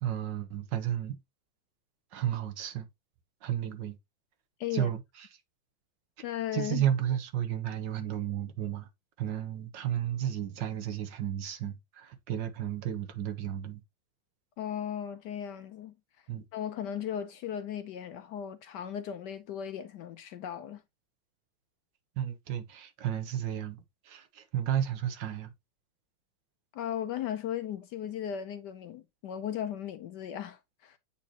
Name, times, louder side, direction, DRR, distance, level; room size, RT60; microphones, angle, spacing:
voice 1, 0.0-1.2 2.1-2.9 3.4-4.0 4.7-5.3 6.5-8.9 9.2-13.8 16.3-16.5 22.2-25.5, right 10 dB, 65° right, 1.4 m, -33 dB
voice 2, 6.2-6.8 14.6-15.9 16.5-20.8 26.7-31.0, left 9 dB, 70° left, 1.1 m, -36 dB
8.2 x 4.2 x 2.8 m
omnidirectional pair, 2.2 m